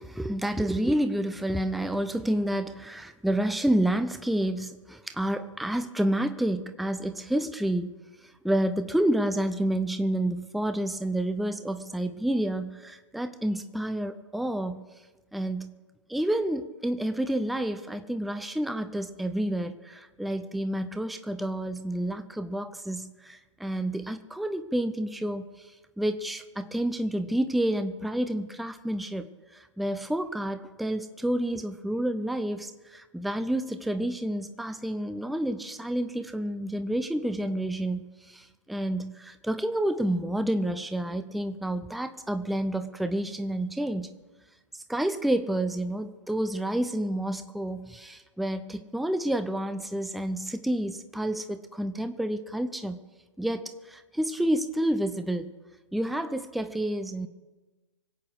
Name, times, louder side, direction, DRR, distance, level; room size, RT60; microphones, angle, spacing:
voice 1, 0.0-8.0 8.2-14.8 15.3-15.7 16.1-25.7 26.0-29.2 29.5-44.2 44.9-53.0 53.4-55.5 55.9-57.3, right 1 dB, ahead, 9 dB, 0.5 m, -29 dB
25.5 x 8.6 x 4.7 m, 1.2 s
figure-of-eight pair, 125°, 16 cm